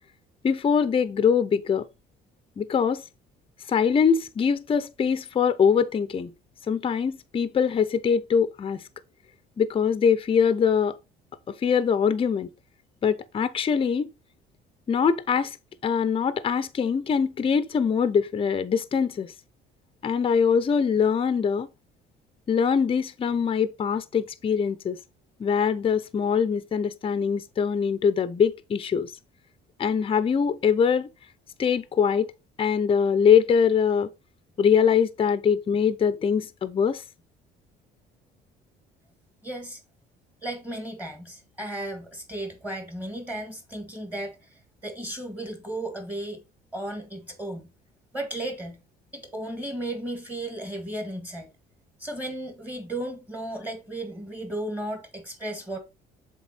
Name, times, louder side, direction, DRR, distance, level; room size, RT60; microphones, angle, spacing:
voice 1, 0.4-1.9 2.6-3.0 3.7-6.3 6.7-8.8 9.6-10.9 11.5-12.5 13.0-14.1 14.9-15.6 15.8-19.3 20.0-21.7 22.5-25.0 25.4-29.1 29.8-31.1 31.6-32.3 32.6-34.1 34.6-37.0, left 6 dB, 30° left, 0.6 m, -23 dB
voice 2, 39.4-39.8 40.4-46.4 46.7-47.7 48.1-48.8 49.1-51.5 52.0-55.8, right 1 dB, 10° right, 1.8 m, -35 dB
7.3 x 3.6 x 4.3 m
cardioid pair, 110°, 18 cm